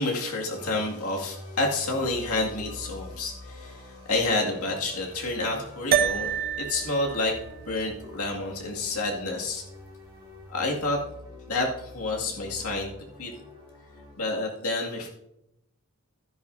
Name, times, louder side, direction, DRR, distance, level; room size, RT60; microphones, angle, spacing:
voice 1, 0.0-7.4 7.6-9.6 10.5-11.0 11.5-12.9 13.2-13.3 14.2-15.2, left 2 dB, 80° left, -1 dB, 2.2 m, -29 dB
sound 1, 0.5-14.1, left 2 dB, 15° right, 4.0 m, -46 dB
sound 2, 5.9-10.5, right 8 dB, 45° right, 0.5 m, -31 dB
13.0 x 10.5 x 2.7 m, 0.85 s
head